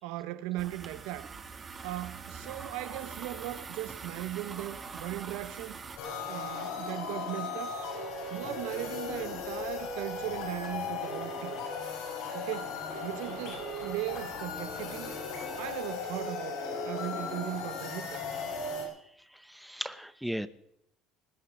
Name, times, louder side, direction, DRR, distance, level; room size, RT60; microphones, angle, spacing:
voice 1, 0.0-1.3 1.8-5.8 6.3-7.8 8.3-11.6 12.3-15.2 15.6-18.2, right 15 dB, 80° right, 0.8 m, -38 dB
sound 1, 0.6-6.0, right 5 dB, 25° right, 1.9 m, -43 dB
sound 2, 6.0-18.8, left 4 dB, 70° left, 5.6 m, -37 dB
voice 2, 18.9-20.5, equal, ahead, 0.8 m, -38 dB
20.0 x 6.6 x 9.6 m
supercardioid pair, 115°, 0 cm